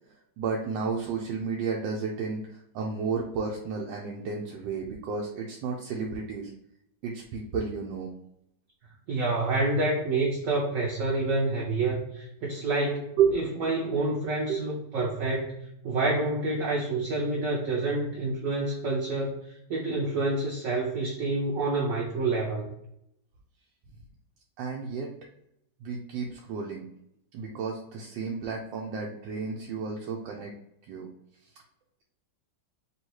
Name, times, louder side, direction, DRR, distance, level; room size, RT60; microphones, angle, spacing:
voice 1, 0.4-6.5 7.0-8.1 13.2-13.4 14.5-14.6 24.6-25.1 25.8-26.9 27.3-30.5 30.9-31.1, right 5 dB, 90° right, -1 dB, 1.3 m, -31 dB
voice 2, 9.1-15.6 15.8-22.7, right 2 dB, 60° right, -3 dB, 0.9 m, -28 dB
3.1 x 2.8 x 4.5 m, 0.78 s
omnidirectional pair, 1.9 m